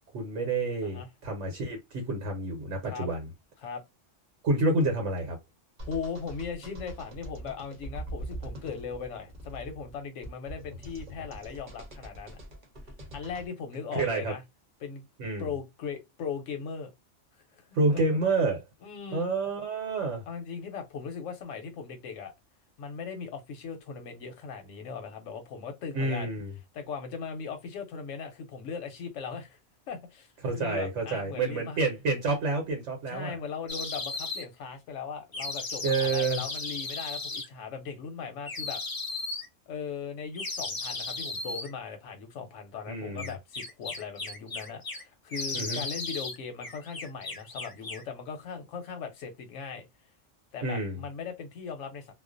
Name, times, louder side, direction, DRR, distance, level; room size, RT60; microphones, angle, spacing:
voice 1, 0.1-3.3 4.4-5.4 13.9-14.3 15.2-15.5 17.7-18.6 19.1-20.2 25.9-26.5 30.4-33.4 35.8-36.4 42.9-43.3 45.5-45.8 50.6-51.0, right 3 dB, 75° right, 1.1 m, -29 dB
voice 2, 5.8-12.4 13.1-14.4 14.8-15.1 15.4-16.9 17.5-18.2 18.8-19.3 20.3-22.3 22.8-26.3 26.7-29.6 29.9-31.8 33.1-38.8 39.7-49.9 50.5-52.1, left 6 dB, 90° left, 1.0 m, -39 dB
sound 1, 5.8-13.5, right 1 dB, 45° right, 0.8 m, -43 dB
sound 2, 33.7-34.4 35.3-37.5 38.5-39.5 40.3-41.7 43.2-45.0 45.3-46.4 46.6-48.1, left 3 dB, 40° left, 0.3 m, -35 dB
2.4 x 2.1 x 2.4 m
omnidirectional pair, 1.2 m